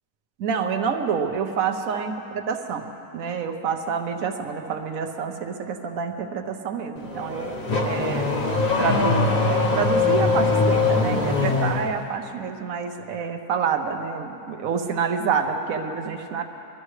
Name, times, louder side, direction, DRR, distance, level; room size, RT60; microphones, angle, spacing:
voice 1, 0.4-2.9 3.1-7.5 7.8-8.3 8.8-16.4, right 6 dB, 60° right, 5 dB, 1.3 m, -27 dB
Car / Accelerating revving vroom, 7.0-12.0, left 3 dB, 30° left, 0.9 m, -22 dB
22.5 x 13.0 x 3.3 m, 2.8 s
omnidirectional pair, 1.7 m